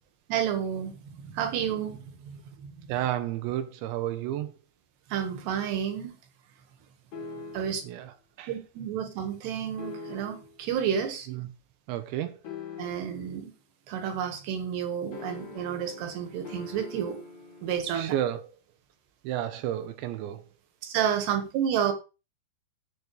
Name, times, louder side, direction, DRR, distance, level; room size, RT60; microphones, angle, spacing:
voice 1, 0.3-2.7 5.1-6.2 7.5-7.8 8.5-11.3 12.8-13.5 13.9-17.2 17.6-18.1 20.8-21.9, right 8 dB, 70° right, 3.5 m, -30 dB
voice 2, 2.9-4.5 7.8-8.5 11.3-11.5 11.9-12.4 17.9-18.4 19.2-20.4, right 12 dB, 85° right, 3.1 m, -31 dB
sound 1, 7.1-7.9 9.8-10.6 12.4-13.3 15.1-17.8, left 4 dB, 40° left, 3.9 m, -43 dB
13.5 x 8.2 x 3.2 m
omnidirectional pair, 5.3 m